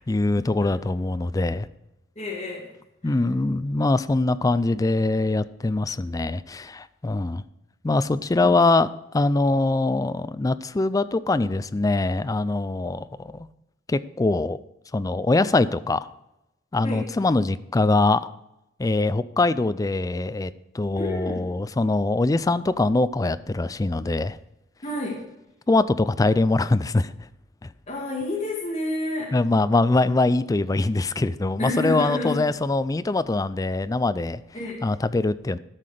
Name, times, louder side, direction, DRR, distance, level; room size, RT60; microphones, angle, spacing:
voice 1, 0.0-1.7 3.0-7.4 7.8-8.9 9.1-13.5 13.9-14.6 14.9-16.1 16.7-18.3 18.8-24.4 25.7-27.1 27.6-27.7 29.3-34.4 34.8-35.6, left 2 dB, 15° left, 14 dB, 0.3 m, -23 dB
voice 2, 2.2-2.7 3.0-3.2 8.4-8.5 16.8-17.0 20.9-21.4 24.8-25.2 27.9-29.3 31.6-32.4 34.5-34.8, left 2 dB, 35° left, -3 dB, 2.2 m, -29 dB
13.0 x 5.9 x 4.9 m, 0.89 s
head